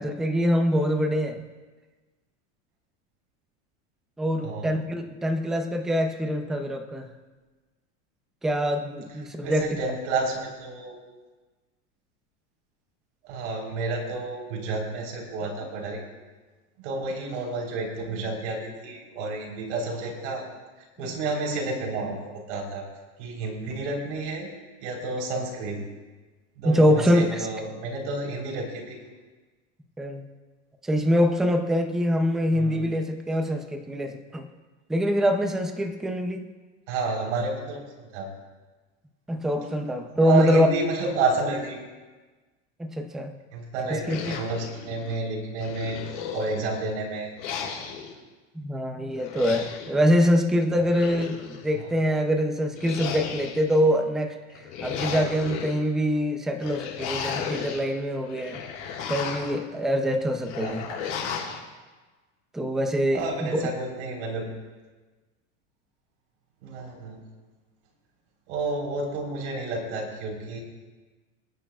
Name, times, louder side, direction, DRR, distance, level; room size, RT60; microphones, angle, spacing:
voice 1, 0.0-1.4 4.2-7.1 8.4-9.7 26.6-27.5 30.0-30.2 30.8-34.5 34.9-36.5 39.3-40.7 42.8-43.3 43.9-44.4 48.6-54.3 54.8-58.6 59.1-60.8 62.5-63.6, equal, ahead, 4 dB, 0.4 m, -24 dB
voice 2, 9.4-11.0 13.2-16.0 16.8-20.5 20.8-22.8 23.2-24.5 24.8-25.8 26.6-29.0 32.5-32.8 36.9-38.3 40.2-41.8 43.5-46.0 46.3-47.3 51.7-51.9 60.6-60.9 63.1-64.5 66.6-67.2 68.5-70.6, right 3 dB, 80° right, 0 dB, 3.8 m, -30 dB
sound 1, 44.0-45.2 45.6-46.8 47.4-48.1 49.2-49.9 50.7-51.7 52.7-53.8 54.5-55.7 56.6-57.8 58.2-59.6 60.4-61.6, left 7 dB, 50° left, 4.6 m, -34 dB
27.5 x 10.0 x 2.3 m, 1.3 s
supercardioid pair, 170°, 35 cm